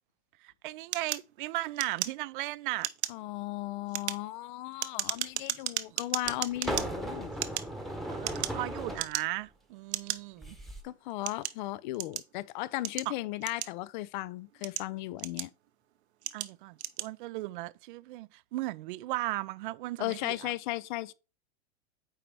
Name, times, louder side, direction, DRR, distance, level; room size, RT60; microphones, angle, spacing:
voice 1, 0.4-2.9 8.1-10.6 16.3-20.5, right 18 dB, 50° right, 0.4 m, -36 dB
sound 1, 0.9-2.5 2.8-3.2 3.8-6.9 7.3-8.6 8.9-9.5 9.9-10.2 10.8-12.3 12.8-14.0 14.5-15.7 16.2-16.5 16.8-17.1, right 12 dB, 80° right, 0.8 m, -35 dB
voice 2, 3.1-7.3 10.8-15.5 20.0-21.1, left 17 dB, 45° left, 0.5 m, -36 dB
sound 2, 5.1-5.2 6.2-9.1 10.4-10.8, right 1 dB, ahead, 1.0 m, -37 dB
9.1 x 3.3 x 4.7 m
hypercardioid pair, 130°, 33 cm